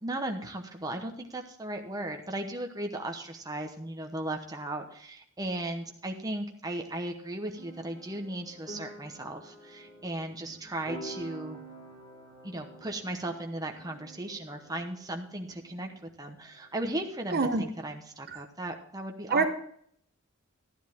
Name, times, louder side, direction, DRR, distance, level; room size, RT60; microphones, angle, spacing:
voice 1, 0.0-11.6 12.4-19.5, right 1 dB, 15° right, 3 dB, 1.0 m, -36 dB
sound 1, 7.5-17.2, right 1 dB, 25° left, 3.5 m, -48 dB
voice 2, 17.3-17.6 18.3-18.4 19.3-19.5, right 4 dB, 45° right, 7 dB, 0.9 m, -25 dB
12.5 x 10.5 x 3.6 m, 0.65 s
head